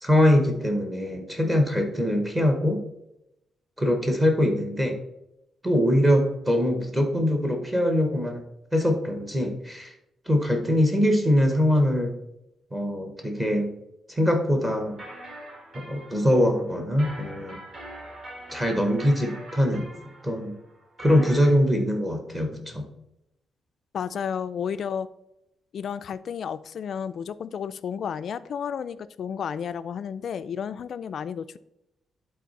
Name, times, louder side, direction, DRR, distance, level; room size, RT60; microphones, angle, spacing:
voice 1, 0.0-2.9 3.8-5.0 5.6-8.4 8.7-9.9 10.3-12.1 12.7-13.8 14.1-15.0 15.7-17.6 18.5-19.9 20.2-20.6 21.0-22.8, equal, 15° right, 3 dB, 0.9 m, -23 dB
sound 1, 14.8-21.5, right 1 dB, 40° right, 2.0 m, -43 dB
voice 2, 23.9-25.1 25.7-31.6, left 7 dB, 50° left, 13 dB, 0.3 m, -32 dB
11.0 x 4.0 x 4.0 m, 0.88 s
wide cardioid pair, 170°, 0 cm